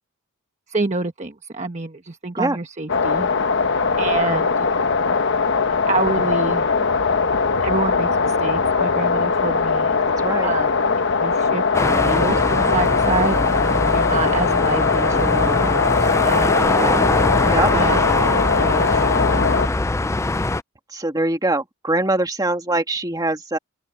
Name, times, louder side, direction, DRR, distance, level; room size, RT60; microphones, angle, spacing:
voice 1, 0.7-3.3 4.0-4.5 5.9-6.7 7.6-9.9 10.4-10.7 11.2-13.4 13.9-15.7 16.0-17.0 17.7-19.0, right 3 dB, 35° right, 1.2 m, -27 dB
sound 1, 2.9-19.7, left 4 dB, 55° left, 1.1 m, -20 dB
voice 2, 10.2-10.5 17.4-17.7 20.9-23.6, right 2 dB, 15° right, 2.2 m, -22 dB
sound 2, 11.7-20.6, left 2 dB, 15° left, 0.4 m, -22 dB
open air
head